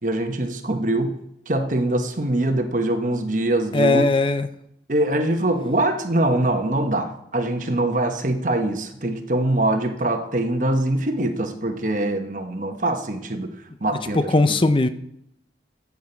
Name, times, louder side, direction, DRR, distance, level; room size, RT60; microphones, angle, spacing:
voice 1, 0.0-1.2 1.5-4.0 4.9-13.5 13.8-14.6, right 1 dB, 45° right, 6 dB, 1.1 m, -23 dB
voice 2, 3.7-4.5 14.1-14.9, left 2 dB, 30° left, 11 dB, 0.6 m, -18 dB
12.0 x 8.5 x 4.5 m, 0.77 s
head